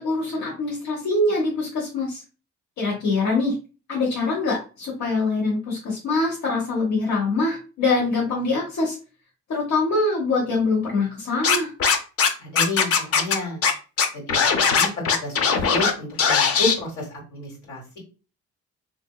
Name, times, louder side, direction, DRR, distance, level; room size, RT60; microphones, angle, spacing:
voice 1, 0.0-2.2 2.8-3.5 3.9-9.0 9.5-11.7, left 3 dB, 65° left, -3 dB, 1.0 m, -24 dB
Scratching (performance technique), 11.4-12.3 12.6-13.3 13.6-13.7 14.0-15.9 16.2-16.7, left 6 dB, 50° left, 0.5 m, -19 dB
voice 2, 12.4-13.6 14.1-17.1 17.3-18.0, left 2 dB, 85° left, -2 dB, 1.5 m, -30 dB
2.9 x 2.6 x 2.2 m, 0.33 s
cardioid pair, 90°, 30 cm